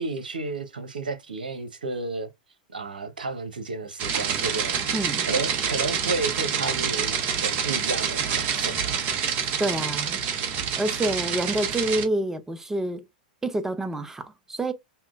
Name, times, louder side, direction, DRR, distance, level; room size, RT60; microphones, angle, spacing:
voice 1, 0.0-2.3 2.7-4.8 5.3-9.0, right 3 dB, 85° right, 0.9 m, -32 dB
sound 1, 4.0-12.0, right 7 dB, 40° right, 0.9 m, -27 dB
voice 2, 4.9-5.3 9.6-10.2 10.7-13.0 13.4-14.7, right 1 dB, 10° right, 0.6 m, -27 dB
5.6 x 2.1 x 2.5 m
hypercardioid pair, 105°, 5 cm